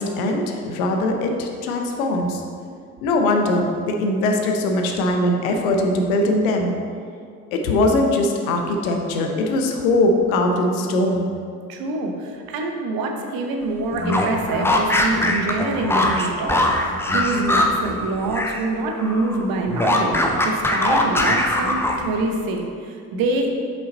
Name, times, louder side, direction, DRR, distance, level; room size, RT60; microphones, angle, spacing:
voice 1, 0.0-2.4 3.0-6.7 7.5-11.3, left 1 dB, 65° left, 3 dB, 0.8 m, -21 dB
voice 2, 11.7-23.5, right 2 dB, 50° right, 2 dB, 0.9 m, -25 dB
sound 1, 13.9-18.6 18.9-22.2, left 1 dB, 5° left, 0.5 m, -21 dB
5.5 x 5.4 x 3.9 m, 2.3 s
figure-of-eight pair, 55°, 45 cm